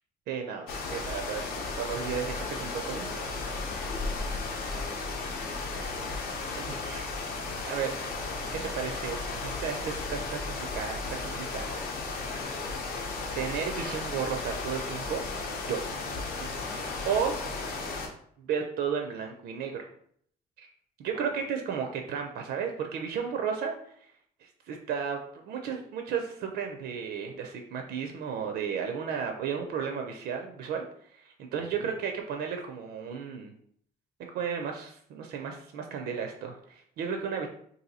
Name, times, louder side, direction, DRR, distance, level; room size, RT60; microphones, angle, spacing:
voice 1, 0.3-3.1 6.5-7.0 7.6-8.1 8.7-11.8 13.3-15.2 15.6-15.8 16.4-17.3 18.4-19.9 20.6-20.7 21.0-23.7 24.4-25.2 25.5-30.8 31.1-33.5 34.3-37.5, right 7 dB, 75° right, 4 dB, 0.5 m, -34 dB
sound 1, 0.7-18.1, left 3 dB, 70° left, 0.7 m, -35 dB
voice 2, 3.7-5.1 5.4-6.3 6.7-7.0 11.6-11.9 12.2-13.1 16.6-17.1 21.1-21.4 31.6-31.9, left 4 dB, 30° left, 3 dB, 0.5 m, -49 dB
2.7 x 2.6 x 4.0 m, 0.65 s
cardioid pair, 175°, 17 cm